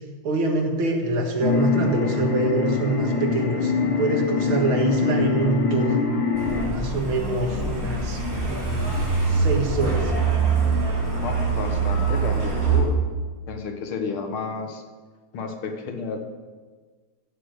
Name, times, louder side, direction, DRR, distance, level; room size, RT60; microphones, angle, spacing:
voice 1, 0.2-6.0 6.5-8.9 9.3-10.1, right 2 dB, 80° right, 2 dB, 2.6 m, -25 dB
sound 1, 1.4-6.7, left 4 dB, 65° left, 2.1 m, -24 dB
Truck, 6.3-12.8, right 5 dB, 10° right, 4.3 m, -24 dB
voice 2, 7.5-8.6 11.2-13.0 13.5-14.8 15.3-16.2, left 4 dB, 85° left, 5 dB, 2.2 m, -32 dB
15.0 x 7.6 x 6.6 m, 1.5 s
omnidirectional pair, 2.3 m